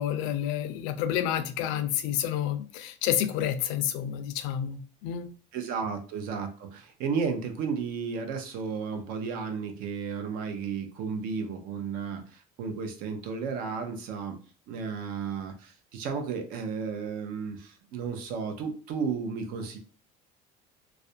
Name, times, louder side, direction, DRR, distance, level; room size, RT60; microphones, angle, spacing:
voice 1, 0.0-5.4, left 10 dB, 80° left, 10 dB, 0.4 m, -29 dB
voice 2, 5.5-14.4 14.7-19.8, right 5 dB, 60° right, 5 dB, 0.6 m, -33 dB
2.4 x 2.1 x 2.7 m, 0.39 s
cardioid pair, 145°, 17 cm